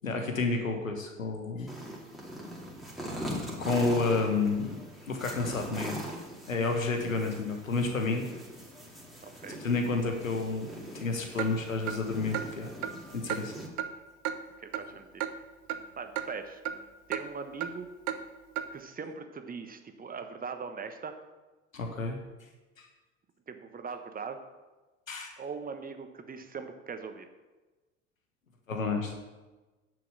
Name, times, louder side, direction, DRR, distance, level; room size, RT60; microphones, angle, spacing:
voice 1, 0.0-1.7 3.6-4.7 5.1-6.0 6.5-8.2 9.6-10.7 10.9-12.7 13.1-13.5 21.7-22.2 22.8-22.9 25.1-25.3 28.7-29.1, left 3 dB, 80° left, 4 dB, 1.4 m, -30 dB
sound 1, 1.7-13.7, equal, ahead, 2.6 m, -41 dB
voice 2, 9.2-9.6 14.6-15.3 16.0-16.6 17.1-17.9 18.7-21.2 23.5-24.4 25.4-27.3, right 5 dB, 20° right, 7 dB, 1.1 m, -40 dB
Clock, 11.4-11.5 11.9-12.0 12.3-12.5 12.8-12.9 13.3-13.4 13.8-13.9 14.2-14.4 14.7-14.9 15.2-15.3 15.7-15.8 16.2-16.3 16.7-16.8 17.1-17.2 17.6-17.7 18.1-18.2 18.6-18.7, right 11 dB, 50° right, 1.0 m, -32 dB
10.0 x 7.0 x 6.6 m, 1.2 s
figure-of-eight pair, 70°, 39 cm